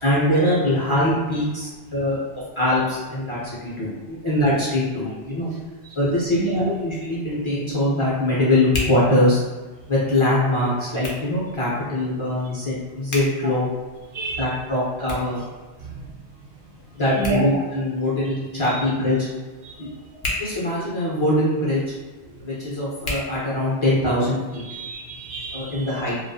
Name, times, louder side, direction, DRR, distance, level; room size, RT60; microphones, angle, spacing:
voice 1, 0.0-5.5 6.0-9.4 9.9-13.7 14.4-15.4 17.0-19.3 19.8-19.9 20.4-21.8 22.4-24.6 25.5-26.2, left 1 dB, 40° left, -7 dB, 0.5 m, -22 dB
Hands, 6.5-24.1, left 2 dB, 60° left, 0.8 m, -38 dB
voice 2, 14.1-14.5 15.8-16.1 17.1-17.6 18.7-18.8 19.6-19.8 20.1-20.4 24.7-26.0, right 3 dB, 70° right, -3 dB, 0.8 m, -29 dB
2.4 x 2.3 x 2.6 m, 1.3 s
omnidirectional pair, 1.1 m